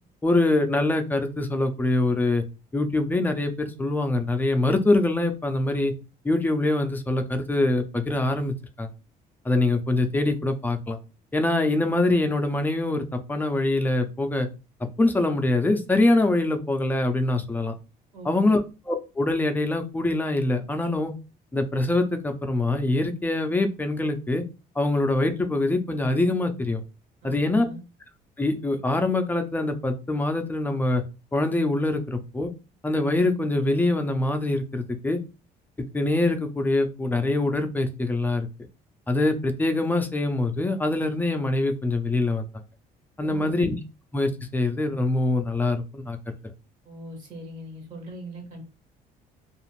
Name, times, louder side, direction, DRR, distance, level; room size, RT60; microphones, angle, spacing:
voice 1, 0.2-2.4 2.7-5.9 6.2-8.9 9.4-11.0 11.3-14.5 15.0-17.7 18.2-18.6 18.9-21.1 21.5-24.4 24.8-26.8 27.2-27.7 28.4-31.0 31.3-32.5 32.8-35.2 35.9-38.5 39.1-42.5 43.2-43.7 44.1-46.2, left 2 dB, 10° left, 6 dB, 0.4 m, -24 dB
voice 2, 18.1-18.5 27.2-27.8 43.2-43.6 46.8-48.6, right 1 dB, 50° right, 2 dB, 1.0 m, -40 dB
2.4 x 2.4 x 3.1 m, 0.30 s
cardioid pair, 110°, 17 cm